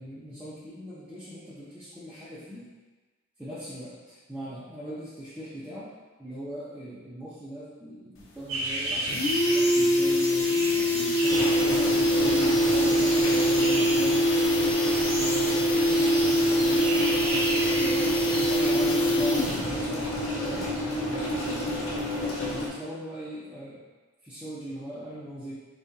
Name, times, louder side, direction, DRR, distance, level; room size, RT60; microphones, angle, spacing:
voice 1, 0.0-2.7 3.4-5.9 6.2-14.2 15.1-20.1 20.4-20.7 21.1-21.7 22.5-23.8 24.2-25.5, right 1 dB, 5° right, -10 dB, 0.5 m, -39 dB
sound 1, 8.2-8.3 8.6-8.7 8.9-19.8 20.0-20.1, equal, 65° left, 0.6 m, -24 dB
sound 2, 8.5-18.7, right 2 dB, 80° right, 0.8 m, -34 dB
sound 3, 11.3-22.7, left 1 dB, 85° left, 1.0 m, -31 dB
4.0 x 3.6 x 2.7 m, 1.3 s
head